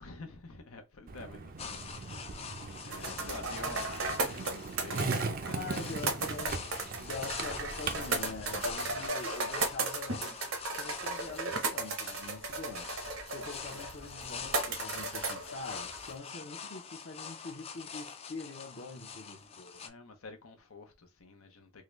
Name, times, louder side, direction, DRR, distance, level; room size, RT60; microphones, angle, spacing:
voice 1, 0.0-2.4 2.8-6.4 18.9-19.5 19.8-21.8, left 3 dB, 90° left, 0.8 m, -49 dB
Skateboard, 1.1-9.1, right 4 dB, 40° right, 0.4 m, -39 dB
sound 1, 1.6-19.9, left 6 dB, 30° left, 0.4 m, -45 dB
sound 2, 2.9-16.2, right 3 dB, 75° right, 0.9 m, -36 dB
voice 2, 5.5-10.4 10.7-12.9 13.3-19.8, left 3 dB, 60° left, 0.7 m, -44 dB
3.7 x 2.2 x 3.0 m
head